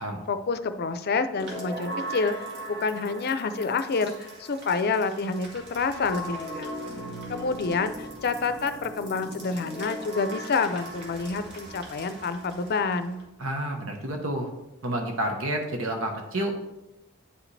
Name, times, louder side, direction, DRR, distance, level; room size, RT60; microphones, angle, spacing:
voice 1, 0.3-2.3 2.7-6.8 7.3-13.2, left 4 dB, 50° left, 10 dB, 0.5 m, -28 dB
sound 1, 1.3-13.2, right 1 dB, 55° right, 2.0 m, -39 dB
voice 2, 13.4-14.5 14.8-16.6, right 1 dB, 80° right, 3 dB, 1.1 m, -29 dB
10.0 x 5.0 x 3.3 m, 0.92 s
head